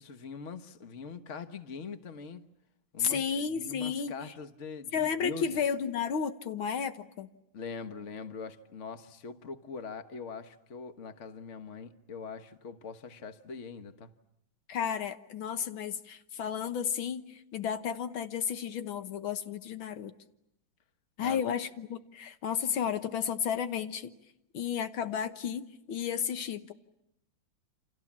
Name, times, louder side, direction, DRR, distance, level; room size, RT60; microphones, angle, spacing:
voice 1, 0.0-2.4 2.9-5.5 7.5-14.1 21.2-21.5, left 5 dB, 40° left, 1.5 m, -42 dB
voice 2, 3.0-4.1 4.9-7.3 14.7-20.1 21.2-24.1 24.5-26.7, left 7 dB, 90° left, 2.0 m, -32 dB
29.0 x 27.5 x 7.4 m
omnidirectional pair, 2.1 m